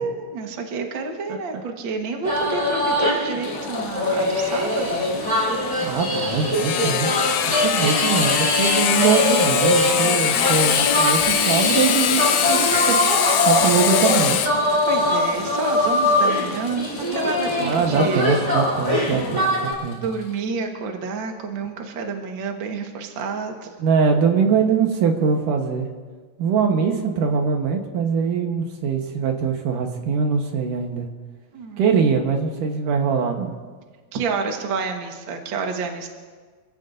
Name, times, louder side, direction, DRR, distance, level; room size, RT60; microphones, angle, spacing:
voice 1, 0.0-5.1 14.9-18.3 19.9-23.7 31.5-31.8 34.1-36.1, right 4 dB, 50° right, 3 dB, 1.7 m, -29 dB
sound 1, 2.2-19.7, left 1 dB, 10° right, 3.8 m, -22 dB
Sawing, 3.4-18.9, left 9 dB, 85° left, 1.4 m, -24 dB
voice 2, 5.8-7.1 7.6-13.0 13.4-14.4 17.6-20.0 23.8-25.9 26.4-31.1 31.8-33.5, right 6 dB, 75° right, 3 dB, 2.7 m, -22 dB
27.0 x 16.5 x 2.7 m, 1.5 s
omnidirectional pair, 3.9 m